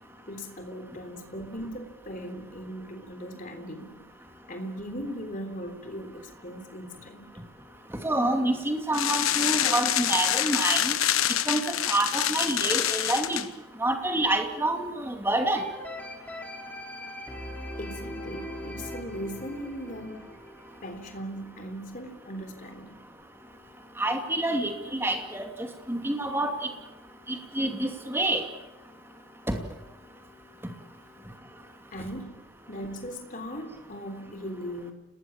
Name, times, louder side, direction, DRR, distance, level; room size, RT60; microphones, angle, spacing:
voice 1, 0.3-4.0 4.5-7.3 17.8-20.2 20.8-23.0 31.9-32.4 32.7-34.9, equal, 40° left, 6 dB, 3.6 m, -38 dB
voice 2, 8.0-11.0 11.5-11.6 11.9-13.4 13.8-15.6 24.0-25.5 25.9-26.5 27.3-28.4 29.5-29.6, right 1 dB, 10° right, 4 dB, 2.5 m, -27 dB
sound 1, 8.9-13.5, left 11 dB, 80° left, 1.1 m, -26 dB
sound 2, 15.6-21.6 22.1-22.2, left 1 dB, 5° left, 3.6 m, -41 dB
29.0 x 19.5 x 7.4 m, 1.0 s
head